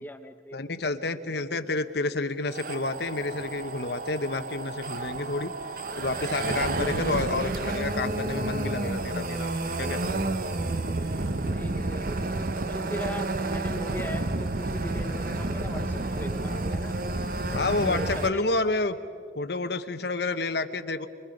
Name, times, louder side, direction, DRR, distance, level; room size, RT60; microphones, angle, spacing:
voice 1, 0.0-1.2 1.5-1.6 6.2-6.3 6.7-7.2 11.5-17.0 17.8-18.7, left 1 dB, 10° left, 7 dB, 0.7 m, -40 dB
voice 2, 0.5-5.5 6.0-10.1 17.5-19.0 19.3-21.1, left 3 dB, 60° left, 8 dB, 1.0 m, -29 dB
sound 1, 2.5-18.3, right 2 dB, 50° right, 1.0 m, -30 dB
26.5 x 23.0 x 5.3 m, 2.5 s
head